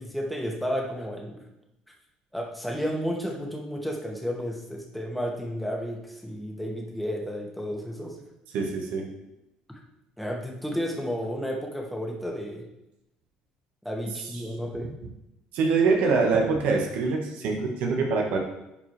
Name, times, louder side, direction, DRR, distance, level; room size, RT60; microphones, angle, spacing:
voice 1, 0.0-1.4 2.3-8.2 9.7-9.8 10.2-12.7 13.8-14.9, equal, ahead, -1 dB, 2.0 m, -32 dB
voice 2, 8.5-9.1 15.5-18.4, right 4 dB, 70° right, 1 dB, 1.4 m, -24 dB
11.0 x 4.8 x 3.4 m, 0.89 s
hypercardioid pair, 70°, 3 cm